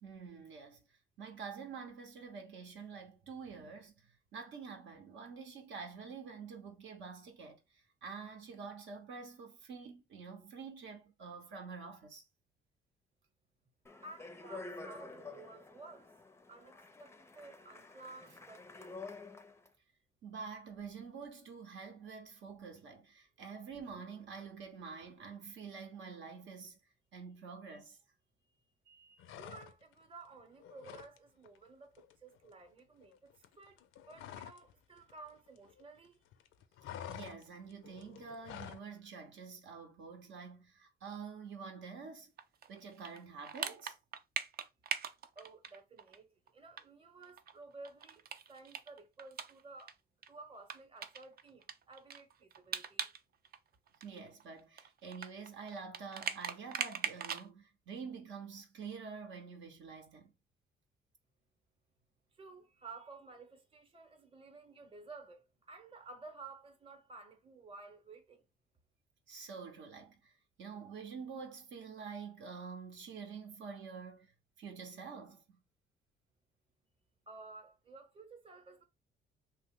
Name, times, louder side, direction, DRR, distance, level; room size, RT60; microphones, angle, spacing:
voice 1, 0.0-0.8 1.2-12.3 20.2-26.8 27.1-28.0 28.9-29.3 37.1-42.3 42.7-44.0 54.0-60.3 69.3-70.3 70.6-75.6, right 5 dB, 75° right, 0.8 m, -47 dB
Speech, 13.8-19.7, left 3 dB, 15° left, 0.4 m, -49 dB
voice 2, 14.0-16.1 16.5-19.0 28.4-28.6 29.3-33.8 34.1-36.2 45.4-50.0 50.3-53.1 62.3-68.4 77.3-78.8, right 3 dB, 25° right, 0.8 m, -54 dB
sound 1, 29.2-30.0 30.3-31.2 31.4-31.7 31.9-34.7 35.0-36.1 36.3-38.9, left 10 dB, 80° left, 0.4 m, -49 dB
sound 2, 42.4-46.2 46.5-46.6 46.8-46.9 47.2-49.9 50.2-50.3 50.7-53.2 53.4-57.5, right 7 dB, 50° right, 0.4 m, -41 dB
2.8 x 2.1 x 3.5 m
cardioid pair, 90°, 20 cm